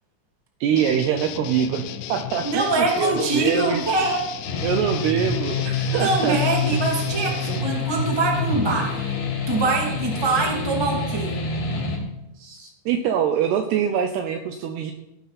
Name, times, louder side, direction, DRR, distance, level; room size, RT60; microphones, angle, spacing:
voice 1, 0.6-1.8 2.1-3.8 4.6-6.4 6.7-6.8 7.4-7.6 11.6-11.7 12.4-14.9, right 8 dB, 80° right, 6 dB, 2.4 m, -24 dB
sound 1, 0.8-7.6, left 12 dB, 85° left, 3.3 m, -35 dB
voice 2, 2.4-4.3 5.9-9.1 9.5-11.4, right 3 dB, 15° right, -1 dB, 0.7 m, -24 dB
sound 2, 4.4-12.0, left 3 dB, 55° left, 4.4 m, -26 dB
16.5 x 11.5 x 4.2 m, 0.87 s
omnidirectional pair, 5.7 m